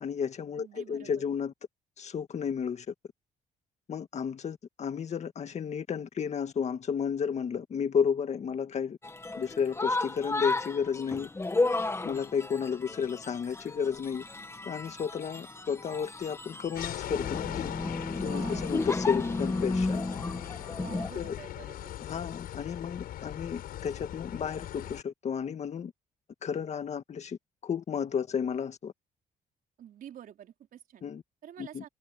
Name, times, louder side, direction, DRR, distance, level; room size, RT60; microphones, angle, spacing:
voice 1, 0.0-1.5 2.0-2.9 3.9-9.0 9.4-11.3 12.0-14.2 14.7-17.7 18.2-20.1 21.1-21.4 22.0-25.9 26.4-27.4 27.6-28.9 31.0-31.2 31.6-31.8, left 7 dB, 50° left, 2.0 m, -32 dB
voice 2, 0.6-1.4 18.2-18.8 20.8-21.9 29.8-31.0 31.4-31.9, right 10 dB, 70° right, 4.2 m, -48 dB
sound 1, 9.0-21.1, left 2 dB, 15° left, 1.9 m, -33 dB
sound 2, 16.7-25.0, left 12 dB, 85° left, 5.9 m, -39 dB
cardioid pair, 105°, 15 cm